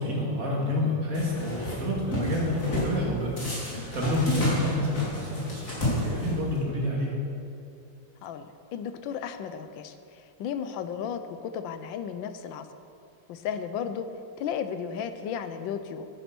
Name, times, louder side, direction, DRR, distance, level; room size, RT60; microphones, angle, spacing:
voice 1, 0.0-7.1, left 1 dB, 45° right, -3 dB, 2.7 m, -29 dB
sound 1, 1.1-1.8 2.1-2.9 3.4-6.6, left 2 dB, 45° left, 3.2 m, -30 dB
voice 2, 8.2-12.7 13.3-14.1 14.4-16.1, left 7 dB, 85° left, 10 dB, 1.4 m, -34 dB
10.0 x 9.8 x 6.0 m, 2.6 s
omnidirectional pair, 2.0 m